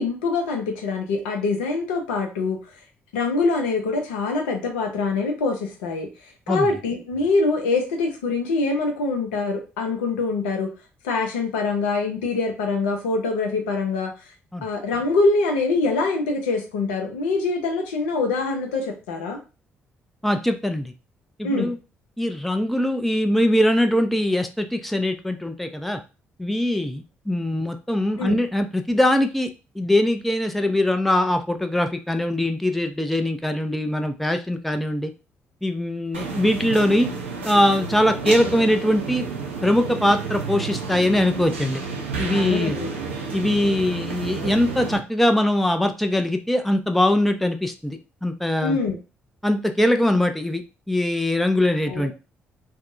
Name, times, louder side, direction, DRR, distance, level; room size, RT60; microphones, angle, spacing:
voice 1, 0.0-2.6 3.1-6.1 6.5-10.7 11.0-14.1 14.6-19.4 21.4-21.7 28.2-28.4 42.3-42.9 48.6-49.0 51.9-52.1, left 3 dB, 70° left, 3 dB, 0.4 m, -24 dB
voice 2, 20.2-20.9 21.4-21.8 22.2-26.0 26.4-29.5 29.8-35.1 35.6-37.1 37.4-39.2 39.6-41.8 42.2-42.8 43.3-48.8 49.4-52.1, left 1 dB, ahead, 7 dB, 0.3 m, -22 dB
sound 1, 36.1-45.0, right 5 dB, 80° right, 0.4 m, -31 dB
2.5 x 2.0 x 2.5 m, 0.31 s
figure-of-eight pair, 45°, 6 cm